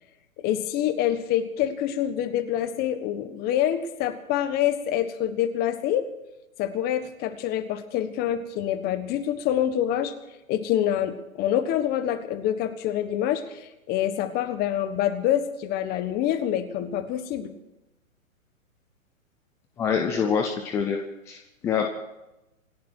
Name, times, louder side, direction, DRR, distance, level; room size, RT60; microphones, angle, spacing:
voice 1, 0.4-6.0 6.6-10.1 10.5-13.6 13.9-17.5, left 11 dB, 20° left, 11 dB, 1.4 m, -26 dB
voice 2, 19.8-21.0 21.3-21.9, left 6 dB, 5° left, 4 dB, 0.5 m, -25 dB
27.0 x 11.5 x 4.6 m, 0.95 s
hypercardioid pair, 145°, 41 cm